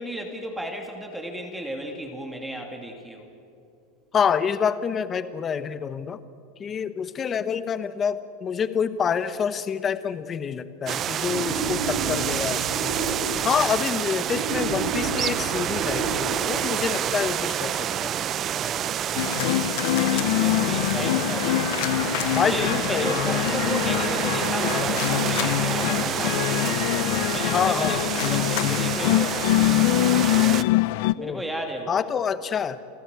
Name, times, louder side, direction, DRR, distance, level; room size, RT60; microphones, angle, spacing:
voice 1, 0.0-3.3 18.4-22.0 22.4-27.0 27.3-29.6 31.1-32.0, right 1 dB, 5° right, 2 dB, 2.6 m, -34 dB
voice 2, 4.1-6.2 6.6-12.9 13.4-18.1 22.3-23.4 27.5-28.0 31.2-31.4 31.9-32.8, left 7 dB, 25° left, 13 dB, 1.0 m, -27 dB
sound 1, 10.9-30.6, right 10 dB, 30° right, 0.5 m, -28 dB
Wild animals, 11.2-13.7 14.2-16.7, right 3 dB, 75° right, 5.6 m, -31 dB
sound 2, 19.2-31.1, left 16 dB, 65° left, 0.6 m, -24 dB
29.0 x 13.5 x 8.2 m, 2.5 s
supercardioid pair, 130°, 0 cm